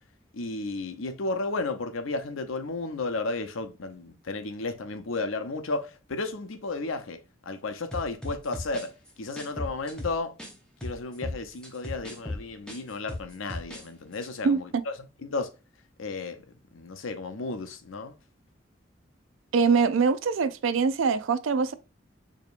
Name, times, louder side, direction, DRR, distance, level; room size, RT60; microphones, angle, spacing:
voice 1, 0.3-7.2 7.5-8.9 9.2-10.3 10.8-14.6 15.2-15.5 16.0-16.4 16.7-18.1, left 3 dB, 90° left, 0.7 m, -33 dB
sound 1, 7.9-10.5 10.8-13.9 14.1-14.3, left 1 dB, 5° left, 0.8 m, -37 dB
voice 2, 14.4-14.8 19.5-21.7, right 5 dB, 80° right, 0.4 m, -23 dB
4.9 x 2.9 x 2.4 m
head